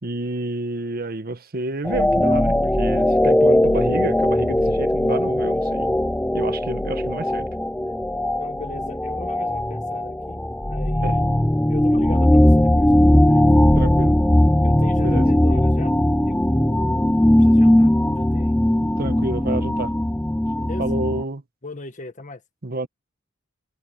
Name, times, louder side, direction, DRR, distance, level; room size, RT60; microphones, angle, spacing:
voice 1, 0.0-5.9 6.3-7.5 11.0-11.1 13.8-14.2 15.0-15.3 19.0-19.9 20.8-21.4 22.6-22.9, right 2 dB, 50° right, 1.2 m, -29 dB
sound 1, 1.8-21.2, left 1 dB, 5° left, 0.4 m, -19 dB
voice 2, 8.4-10.4 10.7-11.2 11.7-12.9 13.3-13.9 14.6-15.9 16.3-17.1 17.4-18.6 20.6-20.9 21.6-22.4, left 2 dB, 40° left, 1.7 m, -38 dB
head